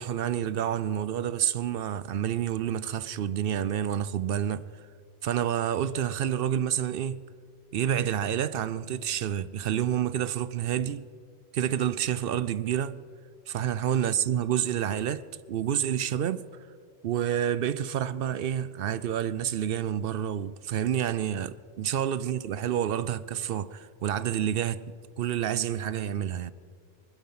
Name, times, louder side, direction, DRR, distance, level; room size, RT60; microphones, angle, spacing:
voice 1, 0.0-4.7 5.2-7.3 7.7-11.1 11.5-13.0 13.5-16.5 17.0-24.8 25.2-26.5, right 10 dB, 65° right, 0.7 m, -28 dB
20.5 x 12.0 x 5.6 m
omnidirectional pair, 1.2 m